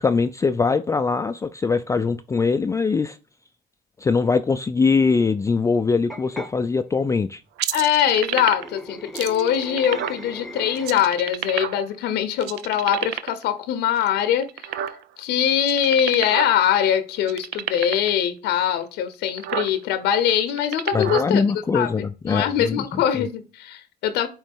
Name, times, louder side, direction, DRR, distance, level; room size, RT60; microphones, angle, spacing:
voice 1, 0.0-3.2 4.0-7.4 20.9-22.8 23.2-23.3, left 4 dB, 20° left, 0.4 m, -22 dB
sound 1, 6.1-6.5 8.2-11.3, equal, ahead, 0.9 m, -38 dB
sound 2, 7.6-8.8 9.2-10.2 10.8-12.0 12.4-13.4 14.0-15.2 15.6-16.6 16.8-16.9 17.2-18.1 18.8-18.9 19.2-19.7 20.4-21.3, right 11 dB, 85° right, 0.6 m, -29 dB
voice 2, 7.7-14.7 15.2-21.4 21.7-24.3, left 9 dB, 85° left, 0.8 m, -22 dB
8.8 x 3.2 x 3.6 m
cardioid pair, 110°, 17 cm